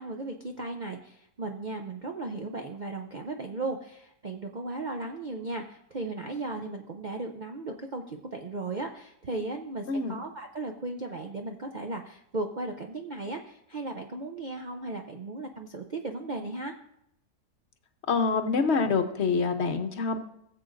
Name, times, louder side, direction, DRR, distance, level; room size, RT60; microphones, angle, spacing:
voice 1, 0.0-16.7, right 2 dB, 75° right, 3 dB, 0.4 m, -36 dB
voice 2, 18.1-20.2, left 4 dB, 55° left, 6 dB, 0.9 m, -26 dB
19.0 x 7.6 x 2.5 m, 0.76 s
omnidirectional pair, 1.7 m